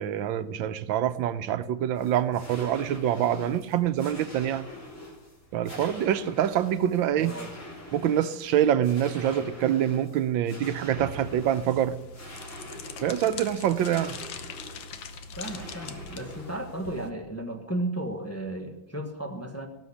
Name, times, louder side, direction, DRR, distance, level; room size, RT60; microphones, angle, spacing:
voice 1, 0.0-4.7 5.5-7.4 7.9-12.0 13.0-14.2, right 10 dB, 90° right, 1.5 m, -25 dB
sound 1, 2.0-16.6, left 1 dB, 40° left, 3.8 m, -45 dB
voice 2, 7.1-7.5 15.4-19.7, right 1 dB, 10° left, 1.2 m, -34 dB
sound 2, 11.2-17.1, left 5 dB, 85° left, 1.8 m, -42 dB
18.0 x 7.2 x 8.5 m
omnidirectional pair, 2.1 m